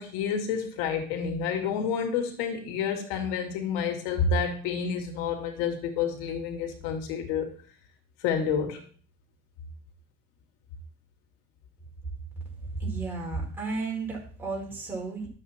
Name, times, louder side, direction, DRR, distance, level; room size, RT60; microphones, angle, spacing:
voice 1, 0.0-7.5 8.2-8.8, left 6 dB, 80° left, 2.5 m, -29 dB
voice 2, 12.7-15.3, right 3 dB, 10° right, 4.7 m, -33 dB
12.5 x 8.2 x 4.4 m
cardioid pair, 155°, 19 cm